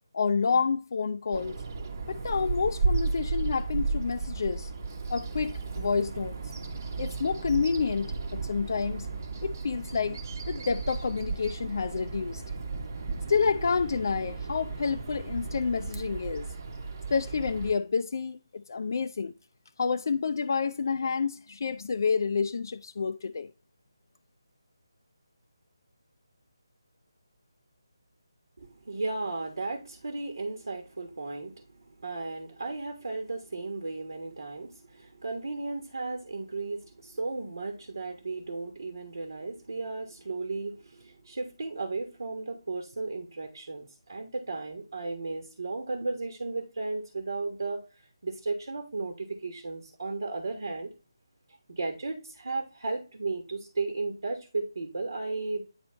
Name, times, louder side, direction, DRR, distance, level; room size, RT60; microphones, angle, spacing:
voice 1, 0.1-1.6 2.1-4.7 5.1-6.5 7.0-9.1 9.4-10.2 10.5-12.4 13.3-16.5 17.1-19.3 19.8-23.5, left 5 dB, 50° left, 0.3 m, -29 dB
Bird vocalization bird call bird song, 1.3-17.7, right 4 dB, 45° right, 1.0 m, -34 dB
voice 2, 28.6-50.9 51.7-55.6, right 3 dB, 65° right, 1.2 m, -35 dB
9.1 x 3.1 x 4.2 m
figure-of-eight pair, 155°, 2 cm